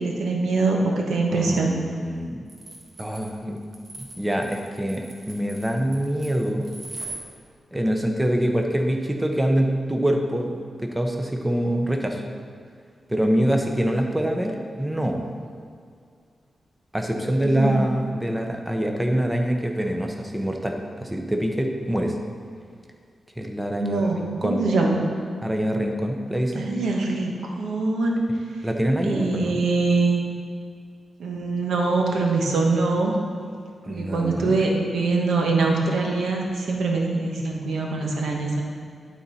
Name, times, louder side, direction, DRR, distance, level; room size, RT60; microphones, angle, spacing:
voice 1, 0.0-1.7 17.4-17.8 23.8-25.0 26.5-28.2 29.0-30.2 31.2-33.1 33.8-38.6, right 3 dB, 90° right, 0 dB, 1.1 m, -23 dB
voice 2, 1.3-2.4 3.0-3.6 4.2-6.7 7.7-12.2 13.1-15.2 16.9-22.2 23.4-24.6 25.4-26.7 28.6-29.6 33.9-34.5, right 1 dB, 10° right, 2 dB, 0.8 m, -25 dB
sound 1, 2.5-7.2, right 2 dB, 55° right, 1.4 m, -40 dB
11.5 x 4.1 x 4.2 m, 2.2 s
cardioid pair, 85°, 0 cm